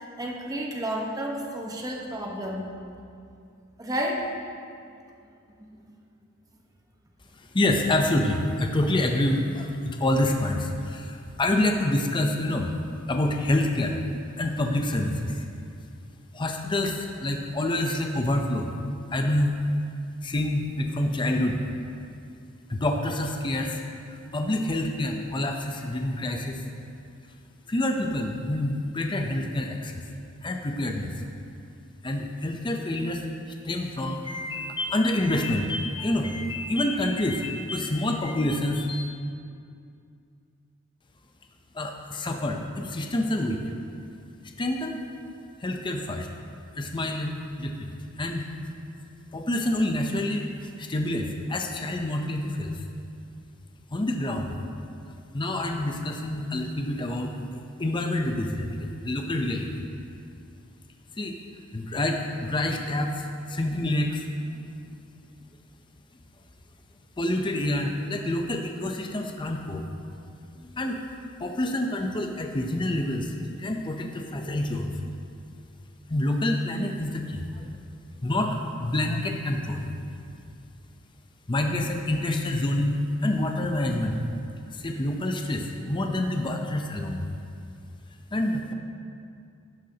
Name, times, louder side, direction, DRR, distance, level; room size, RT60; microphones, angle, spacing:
voice 1, 0.0-2.6 3.8-4.2, equal, 15° right, -1 dB, 1.1 m, -31 dB
voice 2, 7.5-12.7 13.1-14.0 14.4-15.4 16.3-18.7 19.1-19.6 20.2-21.6 22.7-23.8 24.3-26.6 27.7-30.0 30.4-31.2 32.0-39.1 41.7-43.6 44.6-45.0 45.6-46.3 46.8-47.3 47.6-48.4 49.3-52.8 53.9-54.6 55.1-57.3 57.8-59.8 61.2-61.4 61.7-64.3 64.5-64.6 67.2-69.8 70.6-71.0 71.4-75.0 76.1-77.7 78.2-79.9 81.5-84.2 84.7-87.3 88.3-88.7, left 1 dB, 20° left, 3 dB, 0.6 m, -27 dB
11.5 x 10.5 x 2.8 m, 2.4 s
head